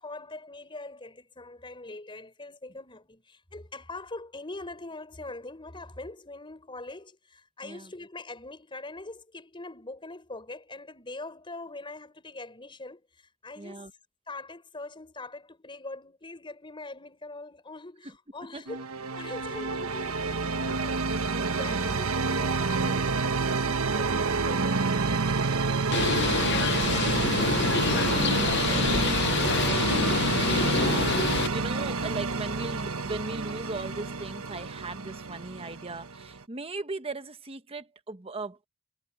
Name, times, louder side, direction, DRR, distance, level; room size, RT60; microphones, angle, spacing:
voice 1, 0.0-13.9 14.3-18.8 19.1-21.1 21.6-30.1, left 2 dB, 25° left, 4.8 m, -43 dB
voice 2, 13.6-13.9 18.5-18.6 21.2-22.1 30.6-38.7, right 3 dB, 25° right, 1.2 m, -38 dB
sound 1, 18.7-36.4, right 4 dB, 80° right, 1.2 m, -28 dB
Bird, 25.9-31.5, left 6 dB, 50° left, 0.7 m, -27 dB
head